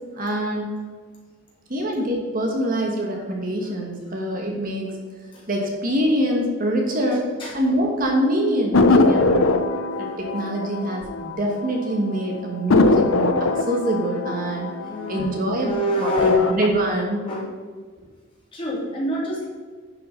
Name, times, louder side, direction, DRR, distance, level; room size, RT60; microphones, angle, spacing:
voice 1, 0.1-0.8 1.7-5.0 5.5-7.3 7.5-9.5 10.0-14.7 15.1-15.7 16.0-17.2, right 1 dB, 45° right, 0 dB, 1.5 m, -24 dB
sound 1, 8.7-11.8 12.1-12.2 12.7-15.6 16.1-16.7, left 3 dB, 90° left, 0.7 m, -21 dB
voice 2, 14.9-16.5 17.2-17.5 18.5-19.4, left 1 dB, 25° left, -6 dB, 3.3 m, -25 dB
11.0 x 5.7 x 5.3 m, 1.5 s
head